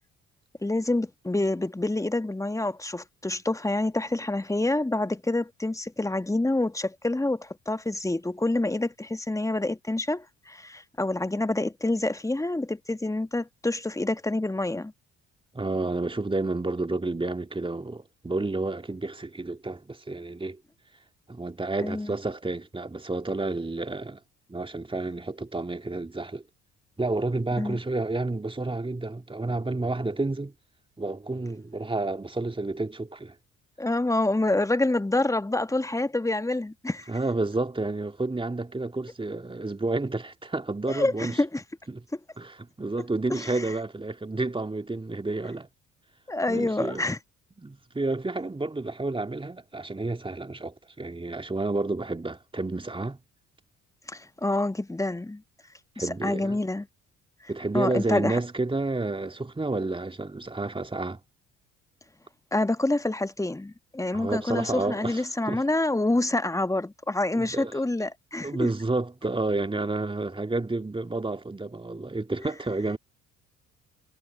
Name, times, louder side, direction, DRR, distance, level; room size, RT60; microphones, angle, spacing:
voice 1, 0.6-14.9 21.8-22.1 27.6-27.8 33.8-37.1 40.9-41.6 43.3-43.6 46.3-47.2 54.1-55.4 56.0-56.9 57.7-58.4 62.5-68.7, left 2 dB, 10° left, 1.4 m, -27 dB
voice 2, 15.5-20.6 21.3-24.2 24.5-26.4 27.0-30.5 31.0-33.4 37.1-41.4 41.9-42.0 42.4-45.7 46.5-47.1 47.6-53.2 56.0-56.6 57.5-61.2 64.1-65.6 67.3-67.8 68.4-73.0, right 2 dB, 15° right, 2.1 m, -30 dB
figure-of-eight pair, 50°, 38 cm